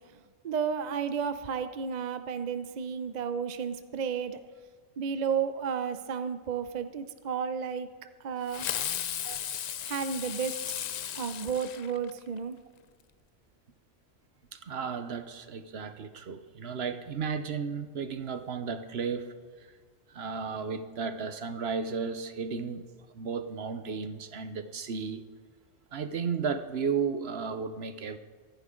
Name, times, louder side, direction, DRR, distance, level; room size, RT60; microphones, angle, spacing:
voice 1, 0.4-4.4 5.0-7.9 8.2-8.7 9.8-10.6 11.1-12.6, right 6 dB, 45° right, 10 dB, 0.7 m, -32 dB
Fireworks, 8.5-12.4, left 9 dB, 70° left, 0.4 m, -35 dB
voice 2, 14.5-19.3 20.1-22.8 23.1-25.2 25.9-28.2, right 5 dB, 60° right, 10 dB, 1.1 m, -34 dB
24.5 x 10.5 x 3.8 m, 1.5 s
omnidirectional pair, 1.2 m